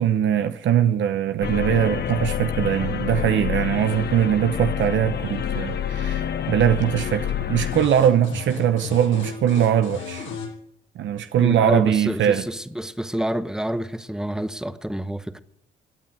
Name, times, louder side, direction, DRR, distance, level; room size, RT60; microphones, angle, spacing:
voice 1, 0.0-10.3 11.0-12.4, right 9 dB, 70° right, 0.9 m, -21 dB
sound 1, 1.4-7.9, left 9 dB, 55° left, 1.1 m, -27 dB
sound 2, 7.7-10.5, left 6 dB, 80° left, 7.1 m, -34 dB
voice 2, 11.4-15.4, right 1 dB, 5° right, 0.9 m, -28 dB
17.0 x 9.2 x 9.1 m
cardioid pair, 90°, 20 cm